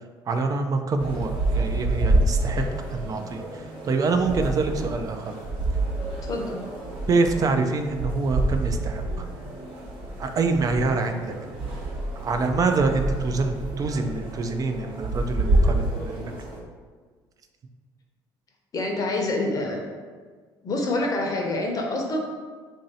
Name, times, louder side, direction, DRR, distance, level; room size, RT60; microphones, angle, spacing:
voice 1, 0.3-2.6 2.9-5.3 7.1-9.2 10.2-11.4 12.2-16.3, right 3 dB, 40° right, 6 dB, 0.4 m, -26 dB
sound 1, 1.0-16.6, right 2 dB, 60° right, 1.1 m, -28 dB
voice 2, 6.2-6.6 18.7-19.8 20.6-22.2, left 2 dB, 40° left, 1 dB, 0.8 m, -26 dB
3.0 x 2.6 x 4.0 m, 1.5 s
supercardioid pair, 85°, 10 cm